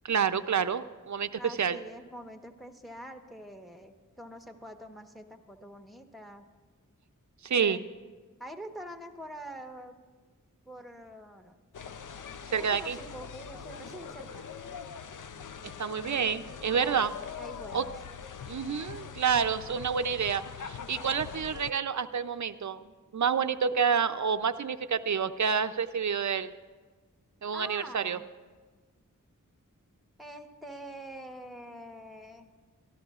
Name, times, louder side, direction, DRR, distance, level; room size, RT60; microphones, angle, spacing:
voice 1, 0.0-1.8 7.4-7.8 12.5-13.0 15.8-17.1 17.7-17.8 18.5-22.8 23.1-26.5 27.4-28.2, right 6 dB, 60° right, 11 dB, 0.5 m, -28 dB
voice 2, 1.3-6.5 7.5-7.9 8.4-10.0 10.7-11.6 12.5-14.5 16.7-17.9 27.5-28.3 30.2-32.5, right 1 dB, ahead, 5 dB, 1.1 m, -45 dB
sound 1, 11.7-21.7, left 7 dB, 70° left, 0.6 m, -43 dB
24.5 x 13.5 x 2.4 m, 1.4 s
wide cardioid pair, 65°, 32 cm